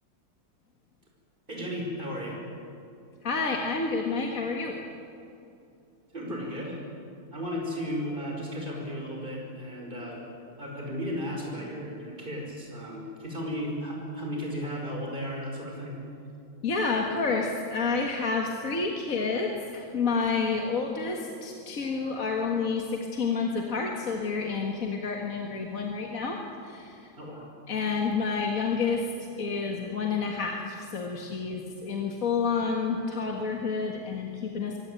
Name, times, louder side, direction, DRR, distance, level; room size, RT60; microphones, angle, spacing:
voice 1, 1.5-2.4 6.1-6.8 7.3-10.2 10.6-16.0 27.2-27.5, equal, 20° right, -1 dB, 5.7 m, -34 dB
voice 2, 3.2-4.8 16.6-27.1 27.7-34.8, left 4 dB, 40° left, 1 dB, 1.9 m, -29 dB
23.5 x 17.5 x 8.9 m, 2.6 s
omnidirectional pair, 2.4 m